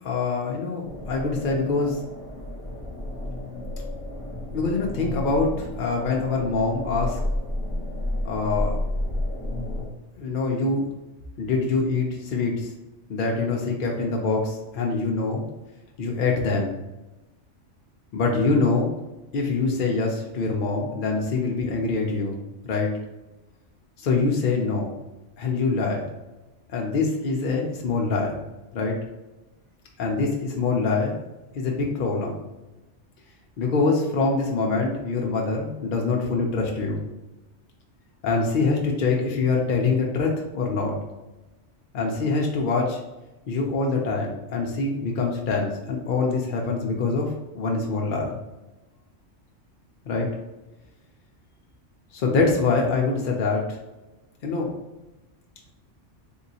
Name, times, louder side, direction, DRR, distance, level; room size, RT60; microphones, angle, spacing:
voice 1, 0.0-2.0 4.5-7.2 8.2-8.8 10.2-10.8 11.4-12.7 13.1-15.4 16.0-16.8 18.1-18.9 19.3-22.4 22.6-22.9 24.0-25.0 25.4-26.1 26.7-28.4 28.7-29.0 30.0-31.2 31.5-32.5 33.6-37.0 38.2-41.0 41.9-43.0 43.5-48.4 50.1-50.3 52.1-53.8 54.4-54.7, left 3 dB, 55° left, -1 dB, 0.6 m, -24 dB
sound 1, 0.8-9.9, left 1 dB, 5° left, 0.5 m, -31 dB
3.6 x 2.8 x 2.7 m, 1.0 s
omnidirectional pair, 1.2 m